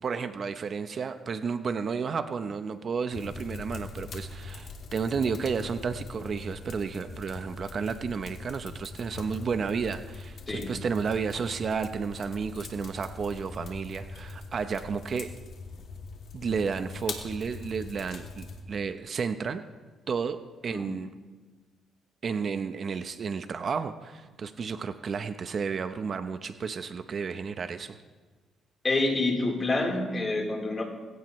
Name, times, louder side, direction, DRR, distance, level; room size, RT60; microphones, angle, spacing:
voice 1, 0.0-15.3 16.3-19.6 20.1-21.1 22.2-28.0, right 5 dB, 50° right, 9 dB, 0.8 m, -32 dB
sound 1, 3.1-18.6, left 3 dB, 65° left, 2.7 m, -42 dB
voice 2, 28.8-30.8, left 2 dB, 30° left, 0 dB, 3.9 m, -27 dB
21.5 x 16.5 x 3.2 m, 1.3 s
cardioid pair, 90°, 0 cm